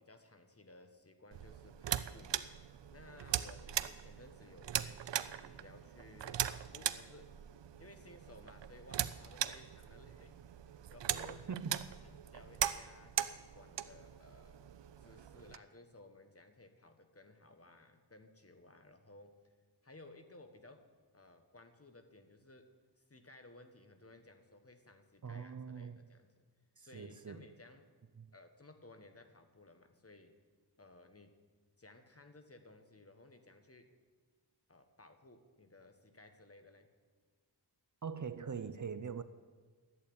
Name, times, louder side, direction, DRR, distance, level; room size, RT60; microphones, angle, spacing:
voice 1, 0.0-2.4 2.9-7.4 7.8-10.4 10.7-14.6 15.0-19.5 19.8-26.5 26.8-27.9 28.3-30.4 30.8-31.4 31.8-33.9 34.7-36.9, left 2 dB, 35° left, 1.4 m, -58 dB
sound 1, 1.3-15.6, right 10 dB, 85° right, 0.6 m, -40 dB
voice 2, 11.5-11.9 25.2-26.0 26.8-27.5 28.2-28.3 38.0-39.2, right 6 dB, 45° right, 0.6 m, -42 dB
11.5 x 8.4 x 8.6 m
wide cardioid pair, 60°, 42 cm